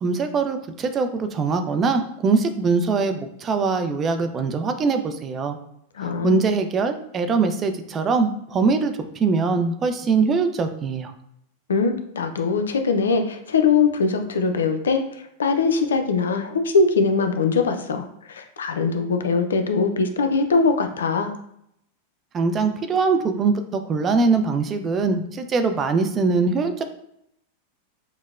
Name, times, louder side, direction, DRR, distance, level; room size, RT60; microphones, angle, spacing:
voice 1, 0.0-5.6 6.0-11.1 22.3-26.8, right 4 dB, 30° right, 7 dB, 0.4 m, -22 dB
voice 2, 6.0-6.5 11.7-15.0 15.4-21.3, left 4 dB, 85° left, 7 dB, 0.4 m, -21 dB
4.4 x 2.0 x 2.4 m, 0.75 s
hypercardioid pair, 105°, 0 cm